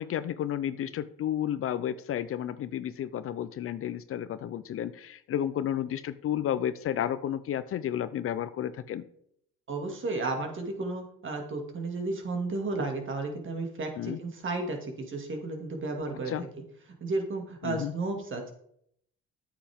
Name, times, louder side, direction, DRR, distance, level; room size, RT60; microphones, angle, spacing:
voice 1, 0.0-9.0 14.0-14.2 16.3-16.4 17.6-17.9, left 10 dB, 50° left, 14 dB, 0.5 m, -32 dB
voice 2, 9.7-16.5 17.0-18.5, right 3 dB, 45° right, 3 dB, 2.3 m, -33 dB
8.8 x 7.5 x 3.6 m, 0.68 s
supercardioid pair, 75°, 29 cm